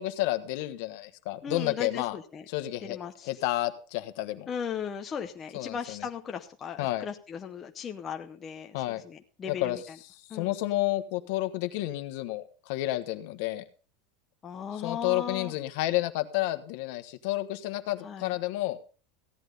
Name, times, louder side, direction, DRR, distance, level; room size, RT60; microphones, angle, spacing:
voice 1, 0.0-2.2 2.5-3.0 3.2-4.5 5.5-6.0 6.8-7.1 8.7-9.0 9.6-9.8 10.3-13.6 14.8-18.8, left 16 dB, 55° left, 9 dB, 1.2 m, -30 dB
voice 2, 1.4-2.4 2.8-3.4 4.5-10.0 10.3-10.6 14.4-15.5 18.0-18.3, left 7 dB, 20° left, 4 dB, 0.7 m, -37 dB
15.5 x 10.5 x 3.9 m, 0.38 s
supercardioid pair, 175°, 0 cm